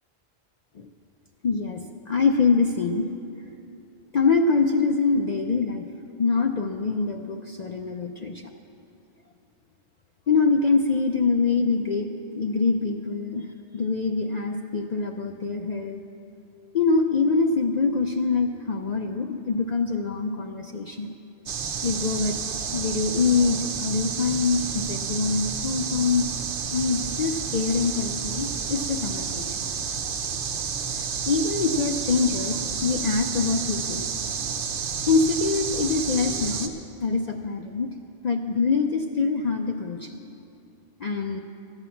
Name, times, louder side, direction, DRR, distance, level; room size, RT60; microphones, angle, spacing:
voice 1, 1.4-3.1 4.1-5.8 6.2-8.4 10.3-12.1 12.3-13.5 13.7-16.0 16.7-21.1 21.8-22.4 22.7-26.3 26.7-29.5 31.3-34.1 35.1-36.7 37.0-37.9 38.2-40.2 41.0-41.4, left 4 dB, 50° left, 3 dB, 0.5 m, -24 dB
sound 1, 21.5-36.7, right 6 dB, 80° right, 1.1 m, -30 dB
13.5 x 8.9 x 7.0 m, 2.7 s
omnidirectional pair, 1.2 m